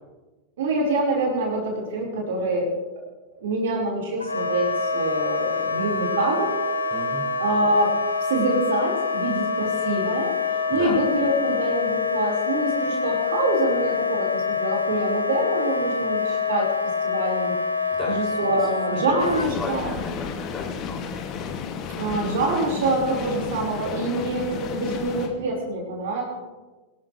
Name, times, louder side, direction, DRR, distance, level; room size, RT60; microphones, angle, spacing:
voice 1, 0.6-2.7 3.4-6.5 7.4-7.9 8.2-10.3 10.7-16.7 17.0-17.6 18.0-19.9 21.9-26.2, right 2 dB, 60° right, -2 dB, 4.6 m, -25 dB
Wind instrument woodwind instrument, 4.2-19.5, left 5 dB, 80° left, 1.1 m, -26 dB
voice 2, 6.9-7.2 10.7-11.0 17.9-18.2 19.5-21.0, left 4 dB, 20° left, -3 dB, 6.6 m, -34 dB
sound 1, 19.2-25.3, left 6 dB, 35° left, 2.2 m, -32 dB
25.0 x 13.0 x 3.3 m, 1.2 s
figure-of-eight pair, 90°, 0 cm